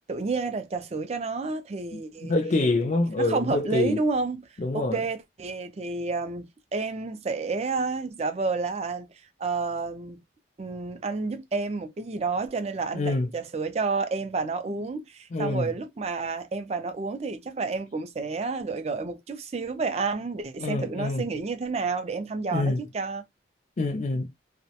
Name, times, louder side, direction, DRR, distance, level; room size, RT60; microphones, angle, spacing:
voice 1, 0.1-2.3 3.2-4.4 4.7-9.1 9.4-10.2 10.6-23.2, right 4 dB, 35° right, 0.4 m, -30 dB
voice 2, 1.9-4.0 4.6-5.0 12.9-13.3 15.3-15.7 20.6-21.3 22.5-22.8 23.8-24.3, left 2 dB, 40° left, 0.4 m, -26 dB
2.2 x 2.1 x 2.7 m
head